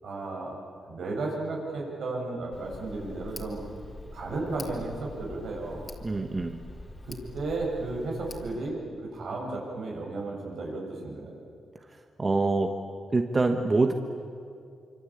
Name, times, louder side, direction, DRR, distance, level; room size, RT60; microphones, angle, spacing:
voice 1, 0.0-0.6 0.9-3.6 4.1-5.9 7.0-11.3, right 2 dB, 75° right, -1 dB, 7.5 m, -34 dB
Tick, 2.5-8.6, left 2 dB, 30° left, 3.1 m, -44 dB
voice 2, 6.0-6.6 11.9-12.7 13.1-13.9, right 3 dB, 30° right, 5 dB, 1.4 m, -25 dB
25.5 x 25.5 x 8.7 m, 2.4 s
cardioid pair, 100°, 0 cm